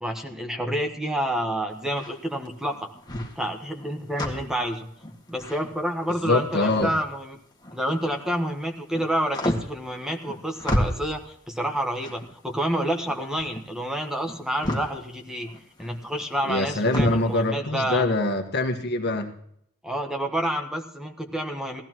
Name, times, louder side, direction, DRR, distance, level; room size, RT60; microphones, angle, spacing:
voice 1, 0.0-2.9 3.3-4.9 5.3-7.4 7.7-15.5 15.8-18.1 19.8-21.8, right 1 dB, 5° right, 2 dB, 1.2 m, -29 dB
sound 1, 1.7-8.4 8.7-17.3, left 1 dB, 20° left, 1.9 m, -33 dB
voice 2, 6.2-6.9 16.5-19.3, left 2 dB, 50° left, 5 dB, 1.4 m, -24 dB
17.5 x 14.5 x 3.0 m, 0.69 s
head